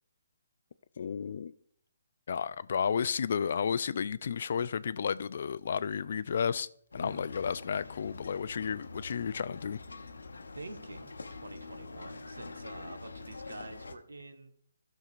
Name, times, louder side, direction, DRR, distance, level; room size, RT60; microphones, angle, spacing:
voice 1, 1.0-1.5 2.3-6.7 6.9-9.8, left 7 dB, 55° left, 0.3 m, -32 dB
sound 1, 6.9-13.9, left 3 dB, 75° left, 0.8 m, -46 dB
voice 2, 10.5-14.5, right 2 dB, 75° right, 1.1 m, -47 dB
15.5 x 6.3 x 2.5 m
figure-of-eight pair, 140°, 0 cm